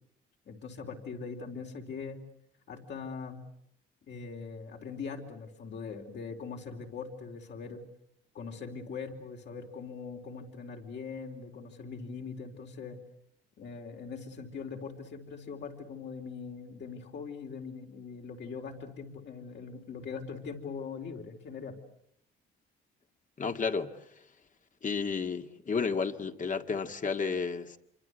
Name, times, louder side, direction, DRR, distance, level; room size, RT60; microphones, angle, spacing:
voice 1, 0.5-2.2 2.7-3.4 4.1-7.8 8.3-13.0 13.6-21.8, left 5 dB, 60° left, 4.3 m, -41 dB
voice 2, 23.4-23.9 24.8-27.8, left 5 dB, 40° left, 1.9 m, -32 dB
27.0 x 24.5 x 8.0 m
cardioid pair, 90°, 20 cm